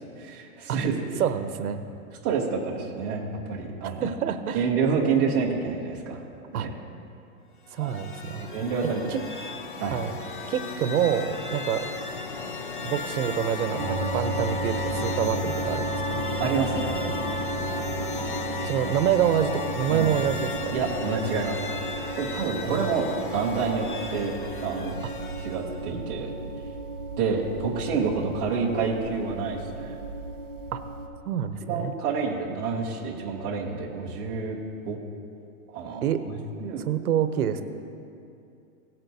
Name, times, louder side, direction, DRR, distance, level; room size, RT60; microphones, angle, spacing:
voice 1, 0.2-0.9 2.2-4.1 4.5-6.2 6.5-6.7 7.8-8.0 8.3-9.1 9.8-10.0 16.4-17.4 19.9-20.2 20.7-21.8 22.2-24.9 25.4-26.3 27.2-29.9 31.7-34.6 34.8-35.0 35.7-36.3 36.6-36.8, right 5 dB, 15° right, -5 dB, 0.6 m, -28 dB
voice 2, 1.2-1.9 3.8-4.7 6.5-6.7 7.7-8.5 9.1-9.2 9.9-10.1 10.5-11.9 12.8-16.2 18.6-20.8 22.7-22.9 25.9-26.0 30.7-30.8 31.3-31.9 36.0-36.3 36.9-37.6, right 9 dB, 75° right, 10 dB, 0.8 m, -27 dB
sound 1, 7.7-25.9, left 4 dB, 40° left, 0.4 m, -35 dB
sound 2, 13.8-31.1, right 2 dB, 55° right, 1.6 m, -34 dB
17.5 x 8.8 x 2.7 m, 2.6 s
supercardioid pair, 180°, 44 cm